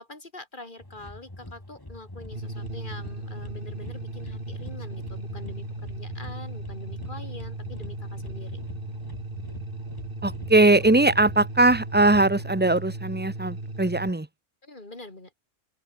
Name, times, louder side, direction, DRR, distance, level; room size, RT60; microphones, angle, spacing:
voice 1, 0.0-8.6 14.6-15.3, left 2 dB, 40° left, 3.9 m, -44 dB
sound 1, 0.8-12.5, left 1 dB, 15° left, 2.9 m, -44 dB
sound 2, 2.3-14.1, right 2 dB, 45° right, 3.9 m, -36 dB
voice 2, 10.2-14.3, right 2 dB, 10° right, 1.0 m, -20 dB
open air
omnidirectional pair, 1.3 m